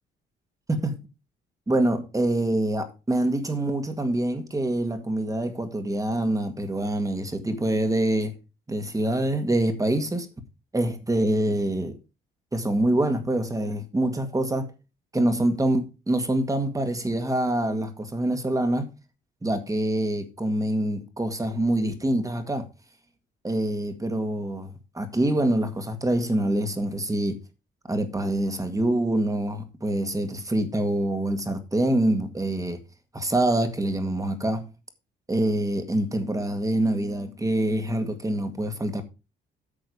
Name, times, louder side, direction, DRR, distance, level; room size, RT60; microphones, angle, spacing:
voice 1, 1.7-8.3 8.7-10.3 10.7-11.9 12.5-14.7 15.1-18.9 19.4-22.7 23.4-24.7 24.9-27.4 27.9-32.8 33.1-34.6 35.3-39.0, right 1 dB, 15° right, 1.9 m, -25 dB
9.0 x 6.4 x 5.0 m
cardioid pair, 90°, 20 cm